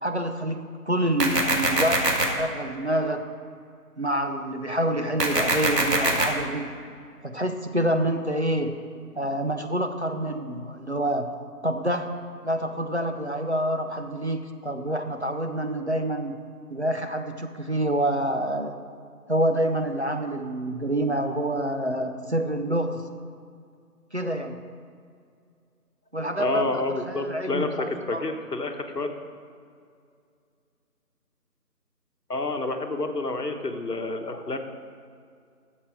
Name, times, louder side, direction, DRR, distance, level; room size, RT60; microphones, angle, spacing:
voice 1, 0.0-3.2 4.0-6.7 7.2-8.8 9.1-11.3 11.6-12.1 12.4-16.4 16.7-18.8 19.3-23.0 24.1-24.6 26.1-28.2, right 1 dB, 45° right, 6 dB, 0.7 m, -27 dB
sound 1, 1.2-2.2 5.2-6.2, right 2 dB, 85° right, 2.0 m, -22 dB
voice 2, 26.4-29.1 32.3-34.6, left 2 dB, 80° left, 5 dB, 1.3 m, -29 dB
11.5 x 7.4 x 4.9 m, 2.3 s
figure-of-eight pair, 175°, 47 cm